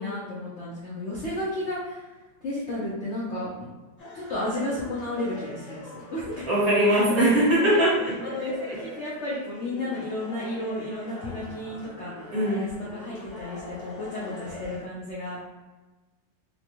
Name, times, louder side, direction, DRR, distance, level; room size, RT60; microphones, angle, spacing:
voice 1, 0.0-2.1 2.4-3.5 4.1-6.5 6.8-7.3 7.7-7.8 8.2-15.4, left 1 dB, 65° left, -6 dB, 0.7 m, -33 dB
sound 1, 4.0-14.8, left 1 dB, 85° left, 2.1 m, -43 dB
voice 2, 6.5-8.1 12.3-12.6, right 1 dB, 55° right, -8 dB, 1.7 m, -21 dB
4.3 x 2.2 x 2.8 m, 1.2 s
omnidirectional pair, 2.0 m